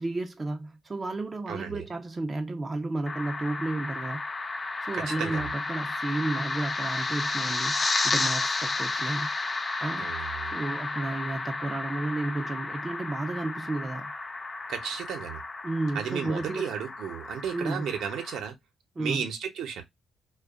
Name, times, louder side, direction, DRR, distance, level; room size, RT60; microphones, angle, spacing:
voice 1, 0.0-4.2 4.8-9.3 9.8-10.1 10.5-14.1 15.6-16.6 17.5-17.9 19.0-19.2, right 2 dB, 25° right, 0.5 m, -32 dB
voice 2, 1.5-1.8 4.9-5.5 10.0-10.5 14.7-15.4 15.9-18.6 19.0-19.8, right 8 dB, 80° right, 0.7 m, -34 dB
sound 1, 3.1-18.4, left 3 dB, 30° left, 0.3 m, -32 dB
2.6 x 2.2 x 2.3 m
cardioid pair, 90°, 0 cm